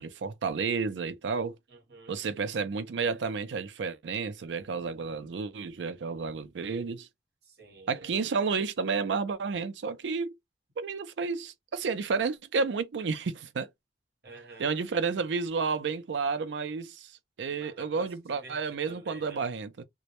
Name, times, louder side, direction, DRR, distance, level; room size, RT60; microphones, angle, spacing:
voice 1, 0.0-1.6 2.1-7.1 7.9-10.4 10.8-13.7 14.6-19.8, right 5 dB, 85° right, 0.4 m, -31 dB
voice 2, 1.7-2.2 7.4-8.2 14.2-14.8 17.5-19.4, right 3 dB, 65° right, 0.9 m, -49 dB
2.1 x 2.0 x 2.8 m
head